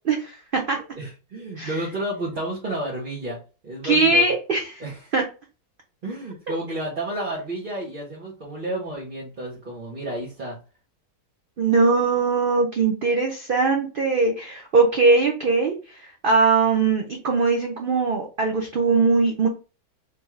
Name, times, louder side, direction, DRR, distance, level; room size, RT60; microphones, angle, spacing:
voice 1, 0.1-0.8 1.6-1.7 3.8-4.8 5.1-5.2 11.6-19.5, right 4 dB, 55° right, 2 dB, 0.6 m, -21 dB
voice 2, 0.9-3.4 3.6-4.3 4.8-5.1 6.0-10.6, right 1 dB, 35° right, -6 dB, 1.2 m, -31 dB
3.4 x 2.6 x 4.5 m, 0.33 s
omnidirectional pair, 1.6 m